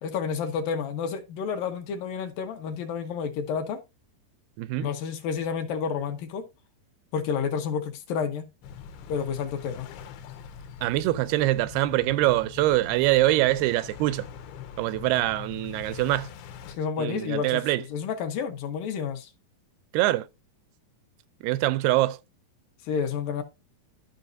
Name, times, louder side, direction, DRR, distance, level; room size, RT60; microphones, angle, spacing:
voice 1, 0.0-3.8 4.8-6.5 7.1-8.5 9.1-9.9 16.7-17.6 17.9-19.3 22.8-23.4, left 6 dB, 70° left, 2.4 m, -30 dB
voice 2, 4.6-4.9 10.8-14.3 14.8-16.3 17.0-17.8 19.9-20.3 21.4-22.2, right 16 dB, 85° right, 2.5 m, -24 dB
sound 1, 8.6-16.8, left 7 dB, 85° left, 2.9 m, -43 dB
13.0 x 5.3 x 2.6 m
omnidirectional pair, 4.5 m